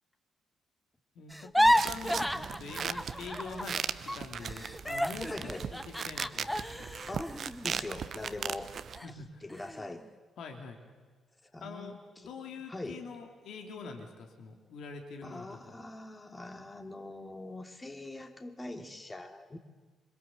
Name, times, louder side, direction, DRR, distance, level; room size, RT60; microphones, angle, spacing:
voice 1, 1.1-7.0 9.0-9.4 10.4-10.8 11.6-15.8, left 4 dB, 60° left, 3 dB, 3.1 m, -45 dB
sound 1, 1.3-8.5 8.9-9.1 9.5-10.0, equal, 5° left, 0.8 m, -31 dB
sound 2, 1.8-9.0, right 7 dB, 50° right, 1.0 m, -38 dB
voice 2, 5.3-5.7 7.1-8.8 9.4-10.1 11.4-11.9 12.7-13.0 15.2-19.6, left 2 dB, 20° left, 5 dB, 2.9 m, -42 dB
26.5 x 25.0 x 8.1 m, 1.4 s
figure-of-eight pair, 40°, 0 cm